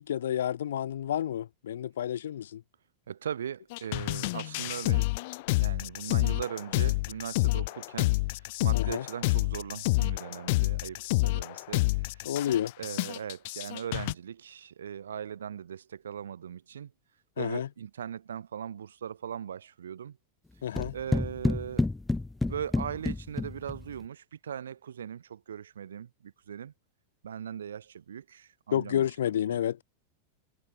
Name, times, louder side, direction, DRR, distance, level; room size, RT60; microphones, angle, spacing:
voice 1, 0.0-2.6 8.7-9.0 12.3-12.7 17.4-17.7 20.6-20.9 28.7-29.8, left 10 dB, 70° left, 1.7 m, -30 dB
voice 2, 3.1-5.1 5.6-12.3 12.8-16.9 17.4-20.2 20.9-21.9 22.4-26.7 27.2-29.1 29.5-29.6, right 8 dB, 75° right, 4.6 m, -39 dB
sound 1, 3.7-14.1, left 22 dB, 55° left, 0.6 m, -28 dB
sound 2, 20.8-24.0, left 2 dB, 10° left, 0.3 m, -30 dB
hypercardioid pair, 95°, 0 cm